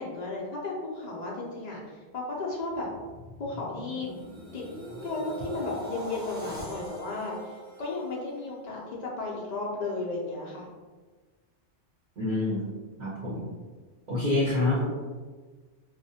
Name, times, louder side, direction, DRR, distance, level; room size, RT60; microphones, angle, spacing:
voice 1, 0.0-2.9 3.4-4.1 4.5-4.6 5.0-10.7, left 3 dB, 60° left, -3 dB, 0.4 m, -34 dB
sound 1, 2.7-8.9 9.3-9.6, right 1 dB, 5° right, 0.7 m, -42 dB
voice 2, 12.2-12.6 13.0-13.5 14.1-14.8, left 2 dB, 50° right, -8 dB, 0.7 m, -27 dB
2.4 x 2.1 x 2.6 m, 1.4 s
omnidirectional pair, 1.2 m